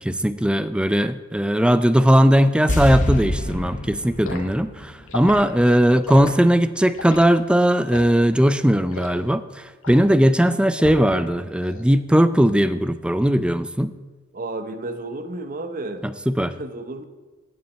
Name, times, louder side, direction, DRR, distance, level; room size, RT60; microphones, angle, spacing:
voice 1, 0.0-13.9 16.0-16.5, equal, 5° right, 13 dB, 0.4 m, -18 dB
sound 1, 2.7-5.9 6.1-6.2, left 1 dB, 35° left, 1.0 m, -26 dB
Liquid, 4.2-4.5 5.1-5.4 6.0-6.3 6.9-7.2 7.9-8.2 8.9-9.2 9.8-10.1 10.8-11.2 11.5-11.8, left 2 dB, 65° left, 1.7 m, -33 dB
voice 2, 14.3-16.0 16.4-17.0, right 2 dB, 40° right, 10 dB, 0.8 m, -32 dB
8.6 x 7.4 x 8.5 m, 1.3 s
head